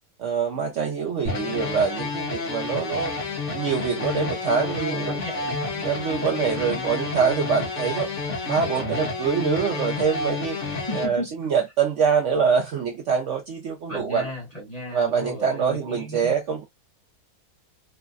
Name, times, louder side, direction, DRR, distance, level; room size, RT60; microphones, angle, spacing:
voice 1, 0.2-3.1 3.5-5.2 5.8-8.1 8.4-10.6 10.9-14.3 14.9-16.6, right 6 dB, 65° right, 0.8 m, -25 dB
sound 1, 1.3-11.1, left 3 dB, 50° left, 1.3 m, -30 dB
voice 2, 4.5-5.8 6.1-7.1 9.4-9.6 10.8-11.3 13.9-16.3, right 1 dB, 25° left, 1.1 m, -35 dB
3.9 x 2.1 x 2.4 m
omnidirectional pair, 1.7 m